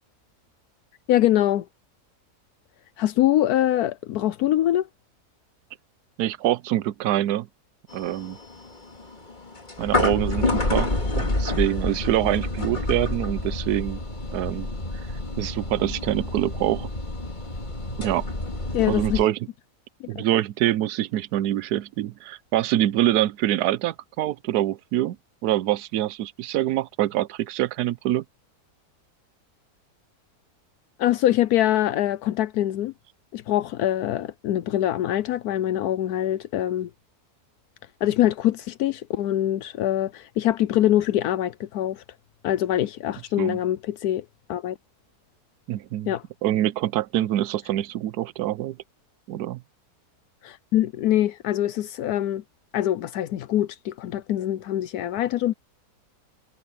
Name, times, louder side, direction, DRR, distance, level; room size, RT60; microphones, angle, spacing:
voice 1, 1.1-1.7 3.0-4.9 18.7-19.2 20.0-20.2 31.0-32.9 33.3-36.9 38.0-42.0 42.4-44.8 46.1-46.2 50.4-52.4 52.7-55.5, left 13 dB, 80° left, 1.2 m, -24 dB
voice 2, 6.2-7.5 7.9-8.4 9.8-10.9 11.2-14.0 14.3-14.7 15.4-16.9 18.0-18.3 18.9-19.4 20.1-25.2 25.4-28.2 43.4-43.6 45.7-46.1 46.4-48.8 49.3-49.6, right 13 dB, 90° right, 1.2 m, -25 dB
sound 1, 7.9-19.2, left 2 dB, 30° left, 2.4 m, -28 dB
omnidirectional pair, 1.6 m